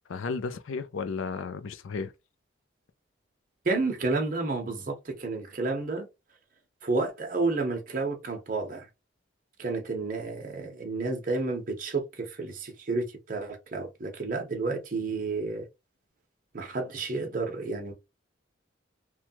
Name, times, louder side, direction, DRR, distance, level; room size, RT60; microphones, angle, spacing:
voice 1, 0.1-2.1, left 4 dB, 90° left, 0.5 m, -33 dB
voice 2, 3.6-6.1 6.8-8.9 9.6-15.6 16.5-17.9, right 3 dB, 45° right, 0.8 m, -31 dB
3.1 x 2.3 x 2.7 m
head